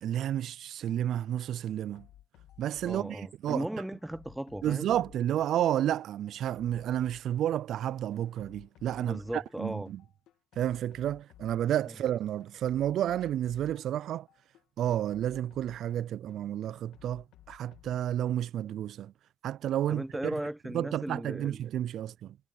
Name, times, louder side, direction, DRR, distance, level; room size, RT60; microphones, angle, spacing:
voice 1, 0.0-2.1 2.6-3.7 4.6-10.0 10.6-14.3 14.8-19.1 19.4-20.0 20.7-22.4, right 11 dB, 75° right, 0.3 m, -31 dB
sound 1, 0.9-1.0 1.3-3.5 3.8-7.8 8.1-9.6 9.9-12.1 12.4-16.4 16.7-18.0, left 13 dB, 90° left, 2.4 m, -57 dB
voice 2, 2.8-4.9 9.0-9.9 11.9-12.0 19.9-21.6, right 1 dB, 5° right, 0.9 m, -37 dB
cardioid pair, 90°, 0 cm